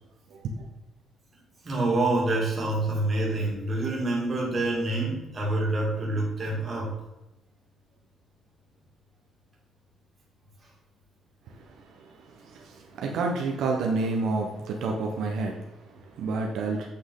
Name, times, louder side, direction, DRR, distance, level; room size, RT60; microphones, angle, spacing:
voice 1, 0.3-0.7 11.5-16.9, right 3 dB, 70° right, 1 dB, 1.1 m, -30 dB
voice 2, 1.6-6.9, right 2 dB, 25° right, -3 dB, 2.3 m, -27 dB
8.6 x 6.0 x 3.9 m, 1.0 s
cardioid pair, 170°, 0 cm